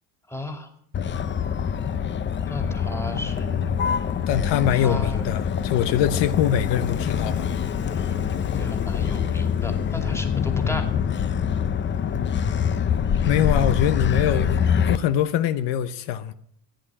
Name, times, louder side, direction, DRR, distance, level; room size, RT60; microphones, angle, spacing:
voice 1, 0.3-0.7 2.5-3.7 4.7-5.3 8.5-10.9, left 1 dB, 5° left, 2.6 m, -34 dB
Motor vehicle (road), 0.9-15.0, left 7 dB, 25° left, 0.7 m, -25 dB
voice 2, 4.3-7.5 13.2-16.3, left 10 dB, 65° left, 1.1 m, -23 dB
15.5 x 10.5 x 8.8 m
cardioid pair, 150°, 44 cm